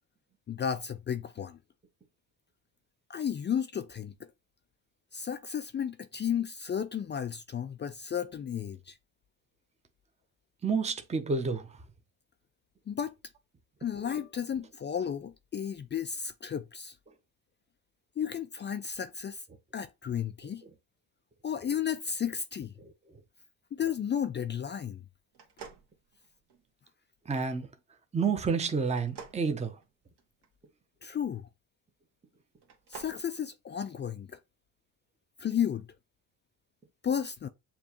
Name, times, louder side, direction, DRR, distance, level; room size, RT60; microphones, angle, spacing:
voice 1, 0.5-1.6 3.1-4.1 5.1-8.9 12.9-13.1 13.8-16.9 18.2-19.4 19.7-20.6 21.4-22.7 23.8-25.0 31.0-31.5 32.9-34.3 35.4-35.9 37.0-37.5, left 8 dB, 25° left, 0.3 m, -33 dB
voice 2, 10.6-11.7 22.8-22.9 27.3-27.7 28.1-29.8, right 5 dB, 15° right, 0.7 m, -29 dB
sound 1, 25.3-26.7 28.9-30.5 32.5-33.2, right 6 dB, 60° right, 1.3 m, -49 dB
6.9 x 2.4 x 2.9 m
supercardioid pair, 70°, 46 cm